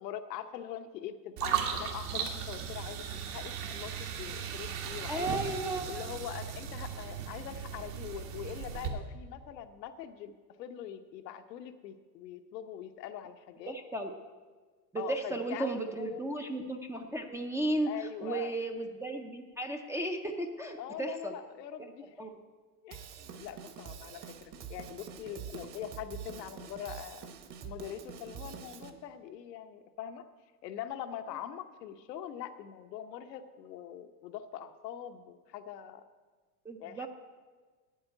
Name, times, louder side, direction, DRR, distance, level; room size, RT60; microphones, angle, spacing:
voice 1, 0.0-5.4 5.9-10.3 10.6-13.8 14.9-16.2 17.9-18.5 20.8-22.2 22.8-27.3 27.6-30.3 30.6-36.0 36.8-37.1, left 10 dB, 90° left, 9 dB, 1.0 m, -43 dB
sound 1, 1.4-8.9, right 8 dB, 70° right, 2.0 m, -37 dB
voice 2, 5.1-5.8 13.7-14.1 14.9-17.9 18.2-21.3 22.2-22.4 36.7-37.1, right 2 dB, 5° right, 0 dB, 0.4 m, -34 dB
Drum kit / Drum, 22.9-28.9, right 7 dB, 40° right, 1.3 m, -46 dB
9.0 x 8.7 x 8.8 m, 1.4 s
supercardioid pair, 130°, 48 cm